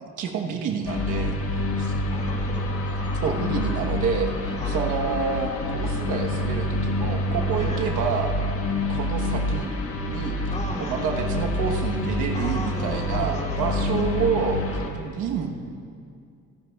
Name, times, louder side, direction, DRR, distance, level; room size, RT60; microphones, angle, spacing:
voice 1, 0.0-1.9 3.0-8.3 8.9-9.7 10.1-10.4 10.8-15.5, right 6 dB, 90° right, 2 dB, 1.2 m, -28 dB
sound 1, 0.9-14.9, left 1 dB, 50° left, 1.4 m, -27 dB
voice 2, 2.1-2.8 4.6-4.9 7.6-7.9 10.5-11.4 12.3-14.1, left 1 dB, 20° left, -1 dB, 2.1 m, -36 dB
25.0 x 9.8 x 2.3 m, 2.3 s
cardioid pair, 90°, 30 cm